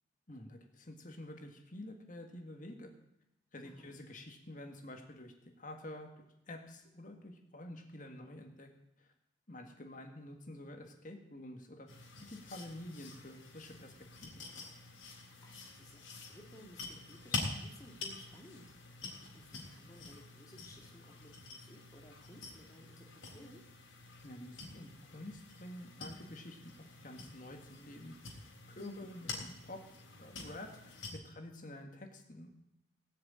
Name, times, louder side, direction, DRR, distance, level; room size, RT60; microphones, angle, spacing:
voice 1, 0.3-2.9 3.5-6.1 6.5-8.7 9.0-9.1 9.5-11.9 12.2-13.9 14.2-14.4 24.2-28.1 28.4-29.8 30.1-32.5, left 1 dB, 40° left, 4 dB, 1.9 m, -49 dB
voice 2, 3.6-3.9 15.2-23.6 28.8-29.1, left 1 dB, 20° left, 1 dB, 2.1 m, -57 dB
sound 1, 11.9-31.1, left 3 dB, 85° left, 3.7 m, -47 dB
18.0 x 6.7 x 8.8 m, 0.82 s
head